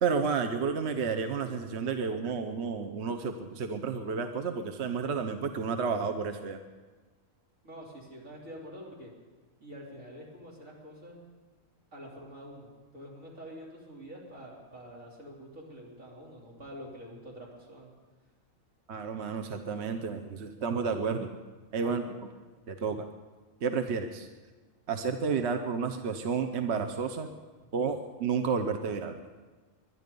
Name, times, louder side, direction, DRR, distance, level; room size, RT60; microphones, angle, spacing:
voice 1, 0.0-6.6 18.9-21.3 21.7-22.0 22.7-23.1 23.6-24.3 24.9-27.3 27.7-29.2, right 5 dB, 60° right, 7 dB, 1.1 m, -31 dB
voice 2, 7.6-9.1 9.6-11.2 11.9-12.7 12.9-17.9 21.8-22.1, equal, 75° right, -4 dB, 4.0 m, -46 dB
21.5 x 11.0 x 5.3 m, 1.3 s
omnidirectional pair, 1.4 m